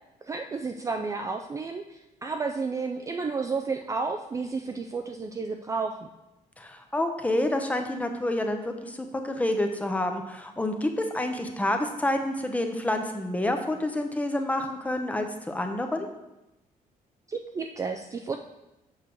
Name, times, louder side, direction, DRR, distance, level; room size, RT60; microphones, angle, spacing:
voice 1, 0.2-6.1 17.3-18.4, right 4 dB, 20° right, 5 dB, 0.4 m, -32 dB
voice 2, 6.6-16.1, left 1 dB, 10° left, 5 dB, 0.7 m, -28 dB
7.4 x 6.2 x 4.5 m, 0.94 s
cardioid pair, 165°, 15 cm